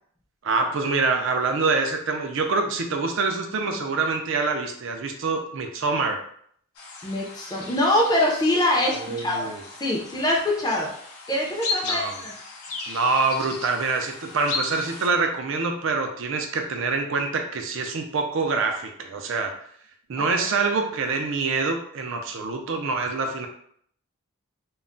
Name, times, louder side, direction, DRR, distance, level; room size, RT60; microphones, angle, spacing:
voice 1, 0.4-6.2 8.9-9.6 11.8-12.1 12.9-19.5 20.1-23.5, right 4 dB, 60° right, 4 dB, 0.4 m, -25 dB
sound 1, 6.8-15.1, left 3 dB, 85° left, 0.5 m, -35 dB
voice 2, 7.0-9.5 9.7-10.9 11.3-12.3 20.3-20.4, left 1 dB, 15° left, -2 dB, 0.5 m, -24 dB
2.2 x 2.0 x 3.7 m, 0.64 s
head